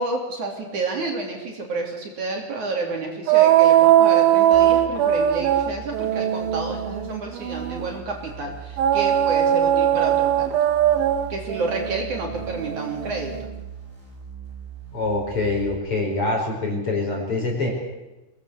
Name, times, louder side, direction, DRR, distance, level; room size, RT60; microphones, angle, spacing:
voice 1, 0.0-10.5 11.3-13.3, right 3 dB, 50° right, 1 dB, 4.5 m, -30 dB
sound 1, 3.3-7.9 8.8-13.5, right 11 dB, 70° right, 3.0 m, -20 dB
sound 2, 4.5-15.8, right 7 dB, 20° right, 5.6 m, -40 dB
voice 2, 14.9-17.7, left 2 dB, 35° left, 1 dB, 5.5 m, -25 dB
24.5 x 19.0 x 8.4 m, 1.0 s
omnidirectional pair, 4.6 m